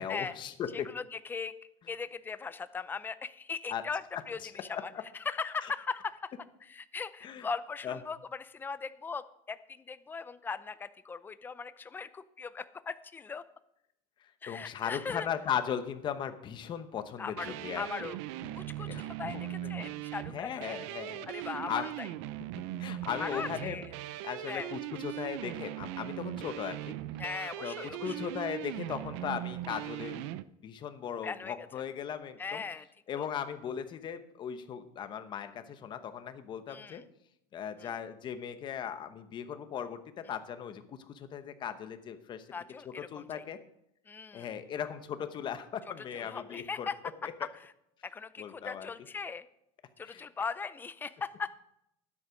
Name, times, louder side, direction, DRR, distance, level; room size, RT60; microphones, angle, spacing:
voice 1, 0.0-0.9 3.7-3.8 4.4-4.5 5.6-5.7 7.2-7.5 7.8-8.0 14.2-18.1 18.9-19.0 19.3-19.7 20.3-21.9 22.8-23.8 24.2-26.9 27.6-27.7 28.0-30.3 30.6-32.6 33.1-37.0 37.5-42.5 42.8-43.6 44.3-46.9 47.2-47.3 48.4-48.9 50.0-50.2, left 8 dB, 30° left, 10 dB, 1.0 m, -38 dB
voice 2, 0.7-1.5 1.9-6.3 6.6-13.4 14.4-15.3 17.2-18.2 18.5-20.8 21.3-22.1 23.2-23.9 24.5-24.8 27.2-28.3 31.2-31.7 32.4-32.9 33.2-33.3 36.7-37.0 37.8-37.9 42.5-43.4 44.1-44.5 46.1-46.9 47.4-47.7 48.0-49.5 50.0-51.5, left 5 dB, 15° left, 13 dB, 0.5 m, -39 dB
sound 1, 17.4-30.4, right 14 dB, 75° right, 0.6 m, -39 dB
12.5 x 9.9 x 5.1 m, 0.78 s
cardioid pair, 155°, 15 cm